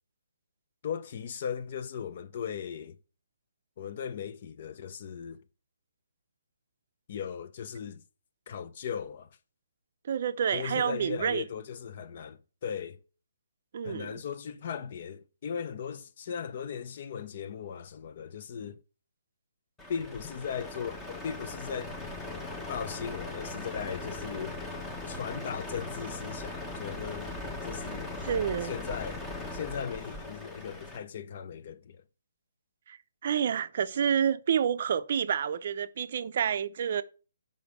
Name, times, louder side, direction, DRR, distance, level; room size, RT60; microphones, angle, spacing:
voice 1, 0.8-3.0 3.8-5.4 7.1-8.0 8.5-9.3 10.5-13.0 13.8-18.8 19.9-22.0 22.7-24.6 25.1-27.4 27.6-28.1 28.6-29.2 29.5-32.0, left 7 dB, 40° left, 0.5 m, -37 dB
voice 2, 10.0-11.4 13.7-14.1 28.2-28.7 32.9-37.0, right 8 dB, 45° right, 0.5 m, -29 dB
Truck, 19.8-31.0, left 2 dB, 10° left, 0.8 m, -39 dB
5.2 x 5.1 x 6.4 m
hypercardioid pair, 165°, 0 cm